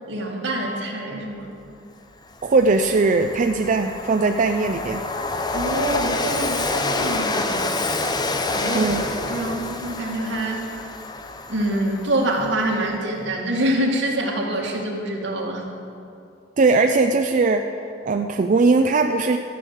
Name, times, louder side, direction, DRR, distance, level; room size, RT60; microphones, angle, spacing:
voice 1, 0.1-1.5 5.5-7.8 8.5-10.8 11.5-15.6, right 1 dB, 80° right, -2 dB, 2.1 m, -26 dB
Train, 1.8-1.9 2.3-12.7, left 2 dB, 20° left, 0.7 m, -28 dB
voice 2, 2.4-5.0 8.7-9.0 16.6-17.6 18.1-19.4, right 3 dB, 45° right, 5 dB, 0.4 m, -19 dB
13.5 x 6.4 x 7.8 m, 2.6 s
head